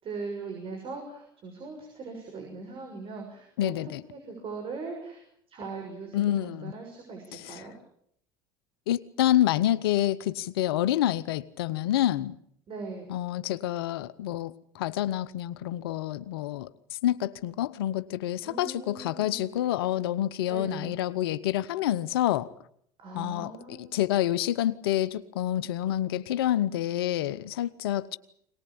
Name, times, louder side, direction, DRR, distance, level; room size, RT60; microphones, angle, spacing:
voice 1, 0.0-7.8 12.7-13.1 18.4-19.5 20.5-20.9 23.0-23.9, right 4 dB, 45° right, 6.7 m, -40 dB
voice 2, 3.6-4.0 6.1-6.7 7.3-7.6 8.9-12.3 13.1-16.7 17.0-22.5 23.1-28.2, left 13 dB, 80° left, 0.9 m, -28 dB
22.5 x 19.5 x 8.6 m
hypercardioid pair, 80°, 12 cm